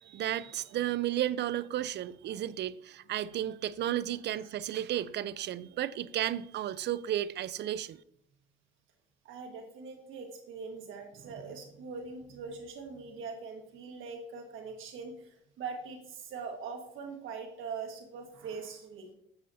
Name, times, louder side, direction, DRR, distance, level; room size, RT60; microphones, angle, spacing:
voice 1, 0.0-8.0, right 12 dB, 60° right, 0.4 m, -33 dB
voice 2, 9.3-19.1, right 5 dB, 85° right, 1.6 m, -42 dB
7.7 x 7.4 x 2.7 m
cardioid pair, 90°, 20 cm